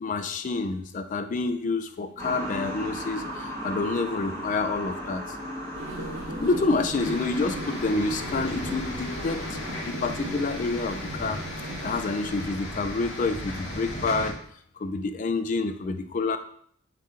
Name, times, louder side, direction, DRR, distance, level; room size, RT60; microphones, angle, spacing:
voice 1, 0.0-5.2 6.4-9.6 9.9-11.4 11.8-14.4 14.8-16.4, left 3 dB, 40° left, 9 dB, 0.3 m, -28 dB
sound 1, 2.2-9.8, equal, 15° left, 1.5 m, -37 dB
sound 2, 5.7-12.5, equal, 70° right, 1.0 m, -37 dB
sound 3, 7.0-14.3, left 1 dB, 70° left, 1.1 m, -36 dB
5.2 x 2.8 x 3.6 m, 0.62 s
head